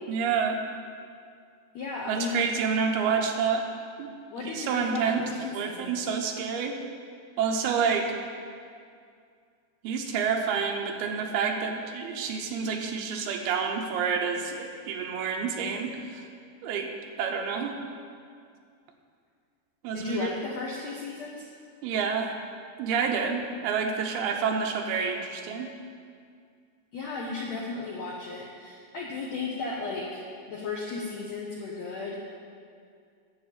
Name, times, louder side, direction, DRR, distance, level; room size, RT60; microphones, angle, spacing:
voice 1, 0.1-0.6 2.1-3.6 4.0-4.1 4.4-5.2 5.5-6.8 7.4-8.1 9.8-16.2 16.6-16.9 17.2-17.8 19.8-20.3 21.8-22.4 22.8-25.7, right 6 dB, 75° right, 3 dB, 2.8 m, -28 dB
voice 2, 1.7-2.4 4.3-5.9 19.9-21.5 26.9-30.2 30.5-32.2, left 4 dB, 75° left, -2 dB, 1.6 m, -35 dB
10.0 x 7.1 x 8.2 m, 2.3 s
omnidirectional pair, 4.6 m